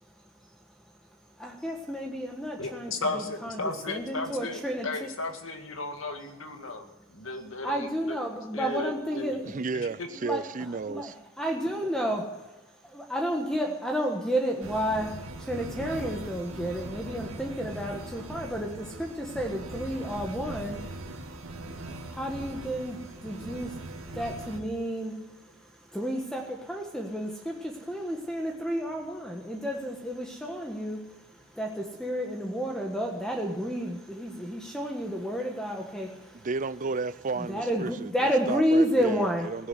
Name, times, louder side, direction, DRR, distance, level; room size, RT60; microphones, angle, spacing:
voice 1, 0.0-0.6 1.4-5.1 6.6-6.7 7.6-9.5 10.1-12.2 12.9-36.5 37.4-39.5, equal, 5° left, 1.5 m, -31 dB
voice 2, 2.6-8.2 8.5-10.1, left 3 dB, 75° left, 2.1 m, -35 dB
voice 3, 9.4-11.1 36.4-39.7, right 4 dB, 40° right, 0.5 m, -33 dB
sound 1, 14.6-24.6, right 1 dB, 90° right, 2.0 m, -40 dB
16.0 x 11.0 x 7.9 m
head